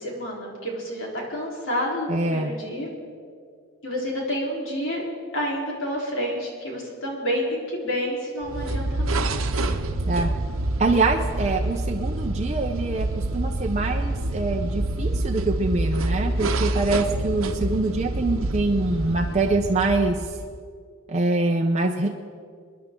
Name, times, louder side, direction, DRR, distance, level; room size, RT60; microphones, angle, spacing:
voice 1, 0.0-2.9 3.8-5.0 5.3-9.3, equal, 65° left, -3 dB, 3.9 m, -29 dB
voice 2, 2.1-2.5 10.1-10.3 10.8-20.4 21.1-22.1, right 2 dB, 35° right, 1 dB, 0.7 m, -24 dB
sound 1, 8.4-20.6, right 2 dB, 85° right, 0.9 m, -27 dB
26.5 x 10.5 x 3.8 m, 2.1 s
head